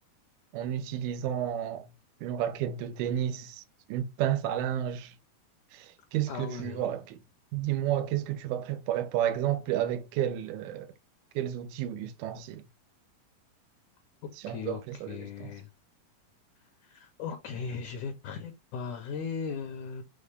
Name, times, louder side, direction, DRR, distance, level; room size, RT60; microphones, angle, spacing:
voice 1, 0.5-1.9 2.2-3.6 3.9-5.1 5.7-7.2 7.5-10.9 11.4-12.6 14.4-15.5, right 11 dB, 80° right, 1.8 m, -31 dB
voice 2, 6.3-6.8 14.2-14.8 15.1-15.7 16.8-20.0, left 5 dB, 75° left, 1.9 m, -37 dB
6.4 x 2.2 x 3.3 m
omnidirectional pair, 4.2 m